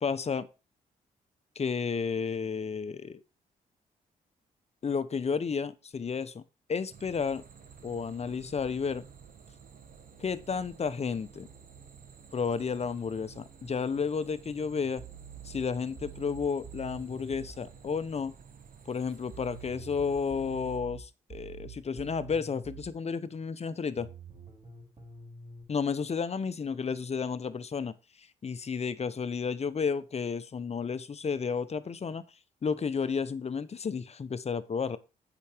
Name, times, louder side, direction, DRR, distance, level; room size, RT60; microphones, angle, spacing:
voice 1, 0.0-0.5 1.6-3.2 4.8-6.4 6.7-7.4 7.8-9.0 10.2-11.5 12.3-15.0 15.4-18.3 18.9-24.1 25.7-32.2 32.6-35.0, left 5 dB, 40° left, 0.9 m, -32 dB
sound 1, 6.9-20.8, right 6 dB, 60° right, 1.5 m, -53 dB
sound 2, 15.0-17.6 19.3-22.9 24.0-25.6, right 6 dB, 40° right, 5.2 m, -47 dB
8.3 x 6.0 x 4.5 m
supercardioid pair, 55°, 16 cm